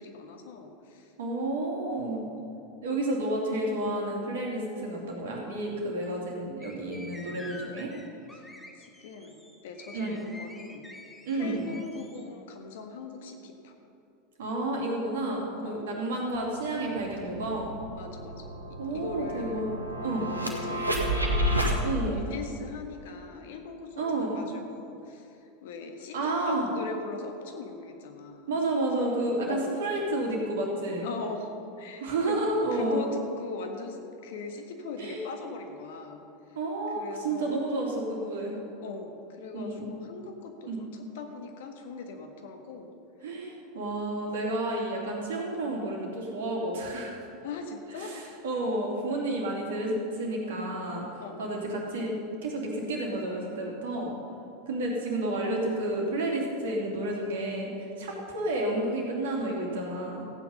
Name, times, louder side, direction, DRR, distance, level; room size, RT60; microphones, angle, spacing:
voice 1, 0.0-1.1 2.1-2.3 8.3-8.5 8.7-10.9 11.3-13.7 15.6-15.9 17.9-18.6 18.9-19.7 20.2-25.4 25.6-28.5 29.4-29.8 31.0-31.5 31.8-36.2 37.0-37.7 38.8-42.9 47.4-48.4 51.2-51.6, left 4 dB, 60° left, 4 dB, 1.5 m, -41 dB
voice 2, 1.2-2.2 2.8-7.9 9.9-10.1 11.2-11.7 14.4-17.7 18.8-19.7 20.0-20.2 21.8-22.2 24.0-24.4 26.1-26.7 28.5-31.1 32.0-33.0 35.0-35.2 36.5-38.5 39.5-39.9 40.7-40.8 43.2-47.2 48.0-51.1 51.4-52.2 52.4-54.1 54.7-57.7 58.0-60.2, right 1 dB, 65° right, -1 dB, 2.8 m, -30 dB
sound 1, 6.6-12.2, left 1 dB, 5° left, 1.5 m, -48 dB
sound 2, 16.3-16.4 16.8-21.8, equal, 90° right, 1.4 m, -31 dB
15.0 x 9.0 x 5.5 m, 2.7 s
figure-of-eight pair, 85°, 0 cm